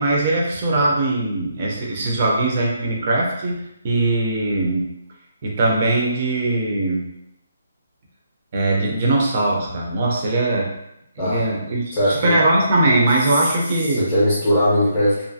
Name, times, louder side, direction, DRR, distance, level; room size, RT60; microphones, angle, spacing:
voice 1, 0.0-5.0 5.4-7.2 8.5-10.7 11.2-11.8 12.2-14.1, right 2 dB, 30° right, -1 dB, 0.4 m, -20 dB
voice 2, 11.9-12.4 13.9-15.3, equal, 10° left, -9 dB, 0.6 m, -19 dB
2.6 x 2.4 x 2.6 m, 0.82 s
hypercardioid pair, 175°, 0 cm